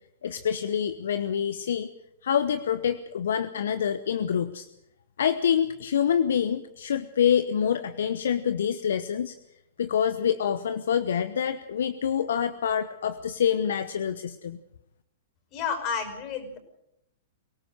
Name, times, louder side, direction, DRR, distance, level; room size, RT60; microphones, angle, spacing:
voice 1, 0.2-1.9 2.2-4.7 5.2-9.4 9.8-14.6, left 8 dB, 70° left, 12 dB, 0.9 m, -26 dB
voice 2, 15.5-16.6, left 6 dB, 40° left, 7 dB, 5.8 m, -31 dB
24.0 x 18.0 x 6.5 m, 0.82 s
figure-of-eight pair, 110°, 0 cm